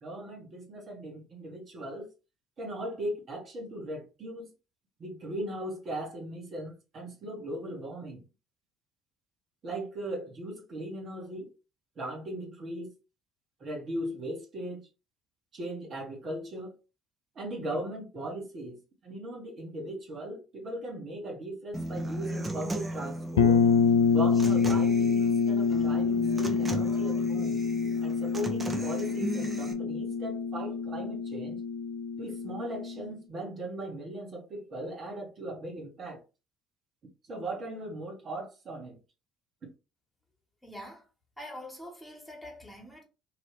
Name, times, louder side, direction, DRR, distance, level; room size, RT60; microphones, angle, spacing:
voice 1, 0.0-2.1 2.6-4.5 5.0-8.2 9.6-11.5 12.0-12.9 13.6-14.8 15.5-16.7 17.3-23.6 24.1-27.6 28.0-31.6 32.2-36.2 37.3-39.0, right 1 dB, 45° right, 1.3 m, -38 dB
Human voice / Acoustic guitar, 21.7-29.7, right 1 dB, 25° right, 0.9 m, -37 dB
sound 1, 23.4-33.0, left 5 dB, 80° left, 0.4 m, -26 dB
voice 2, 40.6-41.0 41.4-43.0, left 1 dB, 10° left, 1.6 m, -44 dB
3.0 x 2.7 x 3.3 m
hypercardioid pair, 55°, 0 cm